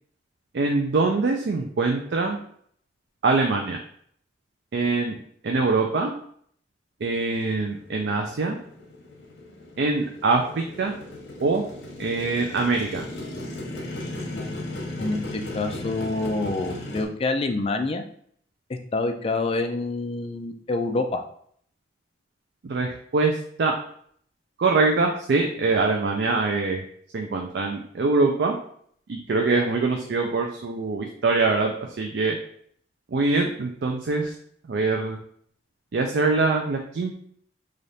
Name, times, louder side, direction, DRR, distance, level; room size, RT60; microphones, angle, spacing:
voice 1, 0.5-2.4 3.2-3.8 4.7-5.2 5.4-6.1 7.0-8.6 9.8-10.9 11.4-11.6 12.0-13.1 22.6-23.8 24.6-26.8 27.1-28.5 29.1-32.4 33.1-34.3 34.7-35.2 35.9-37.1, right 3 dB, 65° right, 2 dB, 0.4 m, -23 dB
Motorcycle, 7.7-17.1, left 1 dB, 80° left, 0.9 m, -36 dB
voice 2, 14.3-14.7 15.0-18.0 18.7-21.2, left 2 dB, 35° left, 6 dB, 0.4 m, -27 dB
3.3 x 2.5 x 4.0 m, 0.63 s
head